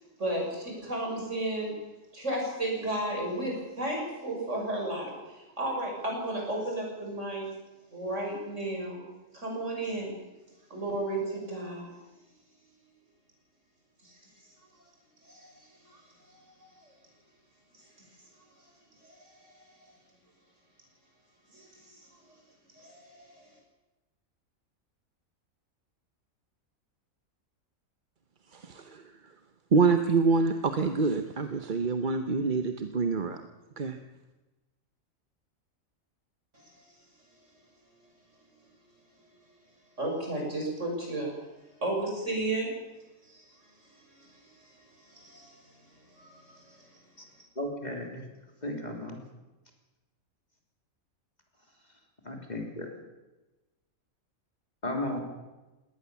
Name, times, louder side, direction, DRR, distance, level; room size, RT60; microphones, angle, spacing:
voice 1, 0.2-1.7 2.1-7.5 7.9-9.1 9.3-10.2 10.7-11.9 14.0-14.2 15.2-16.9 19.0-19.9 21.5-22.0 22.8-23.5 36.5-36.7 40.0-41.3 41.8-42.7 43.2-43.5 43.8-45.7 46.1-46.9, right 1 dB, 60° right, -1 dB, 6.8 m, -34 dB
voice 2, 28.6-29.0 29.7-33.4 33.8-34.0, right 4 dB, 40° right, 7 dB, 1.1 m, -26 dB
voice 3, 47.6-48.2 48.6-49.2 52.2-52.9 54.8-55.2, left 1 dB, 30° left, 2 dB, 3.6 m, -34 dB
20.0 x 18.5 x 7.2 m, 1.1 s
omnidirectional pair, 1.4 m